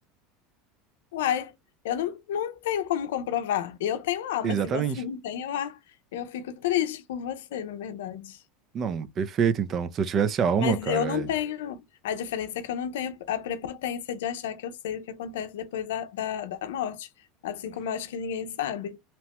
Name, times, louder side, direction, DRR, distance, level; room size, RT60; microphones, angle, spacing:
voice 1, 1.1-1.5 1.8-5.8 6.1-8.4 10.6-17.1 17.4-19.0, left 10 dB, 85° left, 0.5 m, -31 dB
voice 2, 4.4-5.0 8.7-11.3, right 7 dB, 40° right, 0.5 m, -26 dB
2.9 x 2.1 x 2.9 m
supercardioid pair, 115°, 0 cm